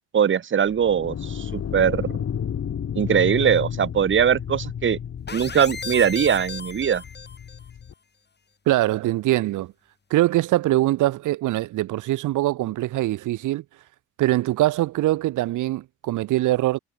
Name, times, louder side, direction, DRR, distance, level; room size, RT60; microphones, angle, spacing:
voice 1, 0.1-2.2 2.9-5.0 5.3-7.0, right 8 dB, 40° right, 1.1 m, -21 dB
sound 1, 0.7-7.9, left 8 dB, 55° left, 5.7 m, -32 dB
sound 2, 5.3-7.7, left 5 dB, 35° left, 7.3 m, -36 dB
voice 2, 8.7-9.7 10.1-13.6 14.2-16.8, right 16 dB, 80° right, 1.0 m, -22 dB
cardioid pair, 90°, 30 cm